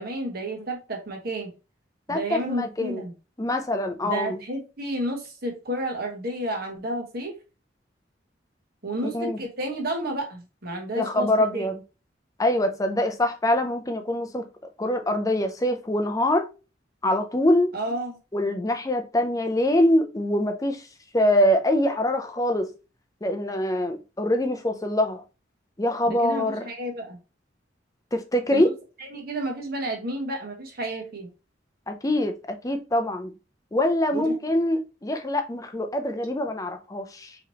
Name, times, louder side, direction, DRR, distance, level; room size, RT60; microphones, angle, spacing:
voice 1, 0.0-1.5 2.1-3.1 4.0-7.4 8.8-11.6 17.7-18.2 26.1-27.2 28.5-28.6 29.0-31.3 34.1-34.3, right 1 dB, 55° right, 1.4 m, -31 dB
voice 2, 2.1-3.0 3.4-4.4 9.0-9.4 10.9-11.8 12.4-14.5 14.8-16.5 17.0-17.7 18.3-20.9 21.1-22.7 23.2-25.2 25.8-26.6 28.1-28.7 31.9-33.3 33.7-37.4, left 1 dB, 20° left, 0.6 m, -24 dB
4.8 x 3.2 x 2.9 m
head